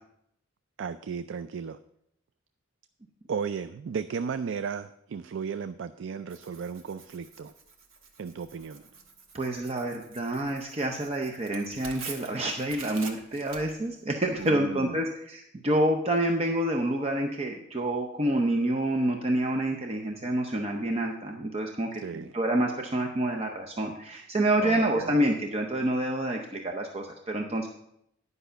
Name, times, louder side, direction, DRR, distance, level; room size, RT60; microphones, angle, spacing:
voice 1, 0.8-1.8 3.3-7.5 8.2-8.8 14.4-15.1 22.0-22.3 24.6-25.1, right 6 dB, 65° right, 12 dB, 0.4 m, -35 dB
Tearing, 6.3-14.5, right 4 dB, 90° right, 1.3 m, -47 dB
voice 2, 9.3-27.7, right 1 dB, 30° right, 2 dB, 0.7 m, -28 dB
10.5 x 5.5 x 6.8 m, 0.76 s
head